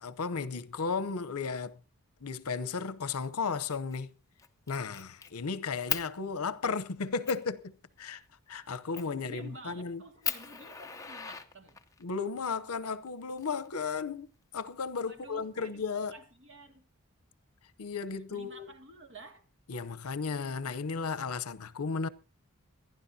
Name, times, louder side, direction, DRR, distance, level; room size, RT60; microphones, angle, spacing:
voice 1, 0.0-1.8 2.2-4.1 4.7-8.2 8.5-10.0 12.0-14.3 14.5-16.1 17.8-18.7 19.7-22.1, left 5 dB, 80° left, 0.8 m, -34 dB
Fire, 3.7-4.0 4.4-5.3 5.9-6.1 6.7-6.8 7.3-7.5 8.9-9.2 9.7-9.8 10.2-12.0 13.1-14.0, left 7 dB, 15° left, 0.8 m, -37 dB
voice 2, 9.1-11.8 15.1-15.8 16.1-16.8 18.1-19.4, right 1 dB, 60° right, 2.1 m, -51 dB
26.5 x 10.5 x 2.8 m
head